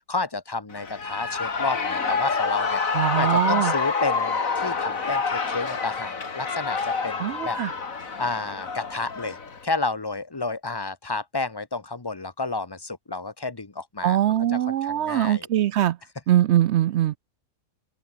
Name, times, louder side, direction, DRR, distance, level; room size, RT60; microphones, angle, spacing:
voice 1, 0.1-7.6 8.2-9.4 9.6-15.5, left 3 dB, 15° left, 1.2 m, -31 dB
Shout / Cheering, 0.7-9.6, left 5 dB, 65° left, 2.7 m, -27 dB
voice 2, 2.9-3.7 7.2-7.7 14.0-16.0 16.3-17.2, right 12 dB, 65° right, 0.7 m, -22 dB
open air
omnidirectional pair, 1.5 m